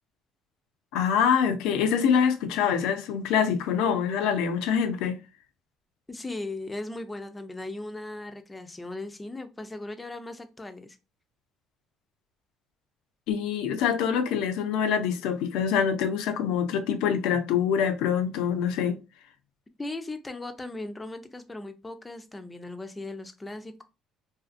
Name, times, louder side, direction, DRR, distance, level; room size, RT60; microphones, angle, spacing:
voice 1, 0.9-5.2 13.3-19.0, left 7 dB, 85° left, 0.4 m, -25 dB
voice 2, 6.1-11.0 19.8-23.8, left 2 dB, 15° left, 0.4 m, -38 dB
2.5 x 2.4 x 2.4 m
cardioid pair, 90°, 0 cm